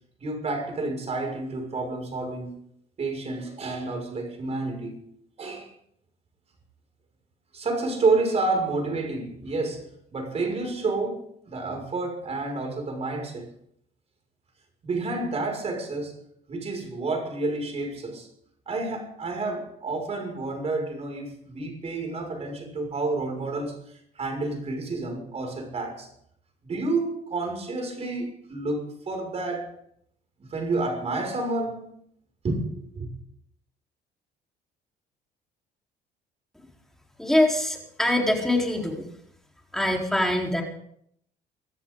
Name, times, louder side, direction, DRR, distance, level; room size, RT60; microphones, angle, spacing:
voice 1, 0.2-2.6 3.0-4.9 5.4-5.7 7.5-13.5 14.8-16.2 16.5-18.3 18.7-26.1 26.6-29.7 30.4-31.9 32.4-33.1, right 3 dB, 40° right, 6.1 m, -29 dB
voice 2, 37.2-39.1 39.7-40.6, left 1 dB, ahead, 4.1 m, -23 dB
24.0 x 13.5 x 3.9 m
cardioid pair, 110°, 17 cm